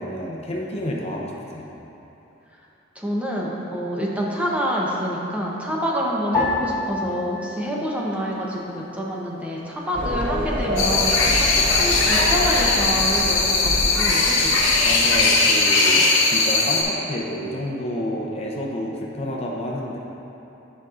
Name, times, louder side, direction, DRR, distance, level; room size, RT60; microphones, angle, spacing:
voice 1, 0.0-1.7 14.8-20.0, equal, 35° left, -2 dB, 0.6 m, -29 dB
voice 2, 3.0-14.6, equal, 5° right, -4 dB, 0.7 m, -27 dB
sound 1, 6.3-8.9 9.1-10.0 10.6-11.1, left 3 dB, 15° left, 1.2 m, -30 dB
sound 2, 9.9-15.6, equal, 45° right, 0.7 m, -28 dB
sound 3, 10.8-16.8, left 3 dB, 85° left, 1.0 m, -19 dB
10.0 x 5.3 x 2.5 m, 3.0 s
head